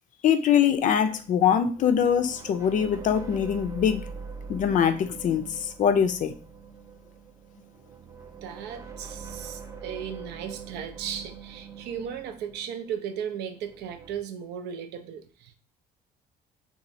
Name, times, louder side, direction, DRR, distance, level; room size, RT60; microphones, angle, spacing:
voice 1, 0.2-4.1 4.5-6.3, left 8 dB, 50° left, 9 dB, 0.4 m, -23 dB
sound 1, 0.7-14.2, right 5 dB, 15° right, 0.4 m, -43 dB
voice 2, 8.4-15.5, right 8 dB, 80° right, 8 dB, 0.4 m, -36 dB
3.0 x 2.3 x 2.6 m, 0.39 s
cardioid pair, 110°, 17 cm